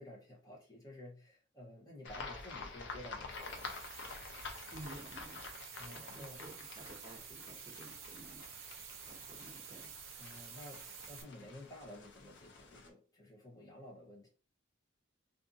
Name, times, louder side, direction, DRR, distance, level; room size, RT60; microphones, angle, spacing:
voice 1, 0.0-3.8 5.7-6.4 10.2-14.3, left 1 dB, 20° left, -2 dB, 0.8 m, -52 dB
sound 1, 2.0-12.9, left 4 dB, 60° left, 0.5 m, -49 dB
sound 2, 3.3-11.2, right 8 dB, 80° right, 0.5 m, -51 dB
voice 2, 4.7-5.4 5.8-8.4 9.0-9.9, right 1 dB, 20° right, 0 dB, 0.8 m, -53 dB
2.5 x 2.5 x 2.5 m, 0.35 s
head